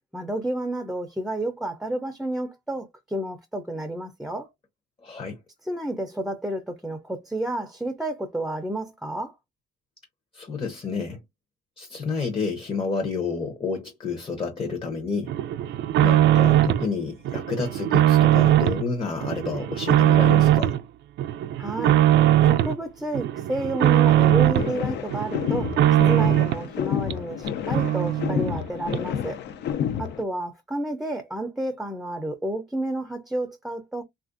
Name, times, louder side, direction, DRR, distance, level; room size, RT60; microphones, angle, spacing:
voice 1, 0.1-4.5 5.6-9.3 21.6-22.0 22.4-25.7 26.1-29.4 30.0-34.0, right 1 dB, 5° right, 0.4 m, -30 dB
voice 2, 5.0-5.4 10.3-11.2 11.8-15.3 16.0-20.8, left 4 dB, 30° left, 0.7 m, -30 dB
sound 1, 15.3-16.9 17.2-18.8 19.2-20.8 21.2-22.8 23.1-24.7 25.1-26.7 27.1-27.2 27.5-27.6 27.7-28.6 28.9-29.0, right 12 dB, 70° right, 0.4 m, -20 dB
sound 2, 24.2-30.2, left 9 dB, 65° left, 0.5 m, -30 dB
3.3 x 2.4 x 2.5 m
cardioid pair, 130°, 19 cm